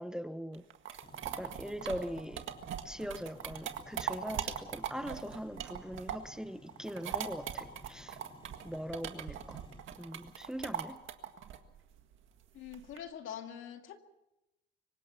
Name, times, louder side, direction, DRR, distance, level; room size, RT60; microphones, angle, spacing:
voice 1, 0.0-2.5 2.8-8.2 8.6-11.0, equal, 5° right, 0.9 m, -41 dB
sound 1, 0.5-6.4 6.7-13.0, right 9 dB, 80° right, 1.8 m, -40 dB
sound 2, 1.0-9.8, left 1 dB, 25° left, 2.0 m, -57 dB
voice 2, 12.5-14.0, left 9 dB, 85° left, 2.2 m, -44 dB
24.0 x 19.5 x 5.7 m
cardioid pair, 90°, 20 cm